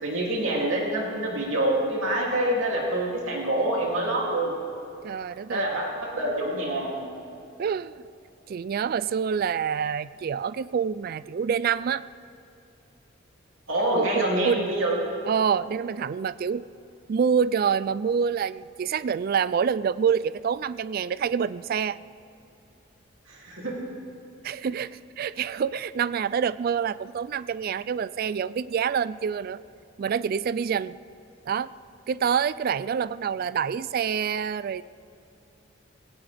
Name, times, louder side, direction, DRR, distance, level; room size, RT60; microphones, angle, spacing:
voice 1, 0.0-4.5 5.5-7.0 13.7-15.1 23.3-23.8, right 1 dB, 80° right, -3 dB, 2.9 m, -26 dB
voice 2, 5.0-5.7 7.6-8.0 8.5-12.0 14.0-14.6 15.2-16.7 17.1-22.0 24.4-29.6 30.0-30.9 31.5-31.7 32.1-34.8, right 7 dB, 45° right, 17 dB, 0.3 m, -27 dB
19.0 x 17.5 x 3.5 m, 2.9 s
head